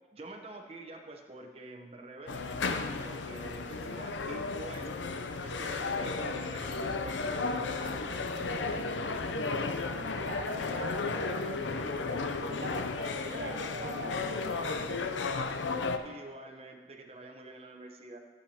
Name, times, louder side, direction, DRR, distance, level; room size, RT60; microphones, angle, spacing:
voice 1, 0.1-4.9 5.4-9.7 16.0-18.2, right 2 dB, 35° right, 3 dB, 0.8 m, -47 dB
sound 1, 2.3-16.0, left 4 dB, 90° left, 0.6 m, -34 dB
voice 2, 10.1-12.0 12.5-15.0, right 1 dB, 85° right, 2 dB, 1.3 m, -42 dB
15.0 x 7.9 x 2.9 m, 1.4 s
head